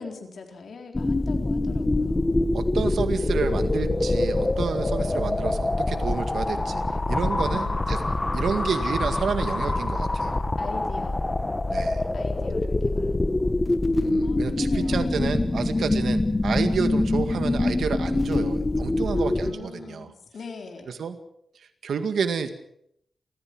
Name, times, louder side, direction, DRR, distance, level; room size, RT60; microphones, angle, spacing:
voice 1, 0.0-2.5 7.5-7.8 10.6-11.3 12.1-13.6 14.2-15.7 19.1-20.9, left 4 dB, 70° left, 3 dB, 4.1 m, -42 dB
sound 1, 0.9-19.5, left 2 dB, 25° left, 1.7 m, -25 dB
voice 2, 2.5-6.8 7.1-8.0 8.3-10.4 11.7-12.0 14.0-20.1 20.9-21.2 21.8-22.5, right 6 dB, 85° right, 8 dB, 2.1 m, -29 dB
30.0 x 14.5 x 6.3 m, 0.71 s
cardioid pair, 85°, 0 cm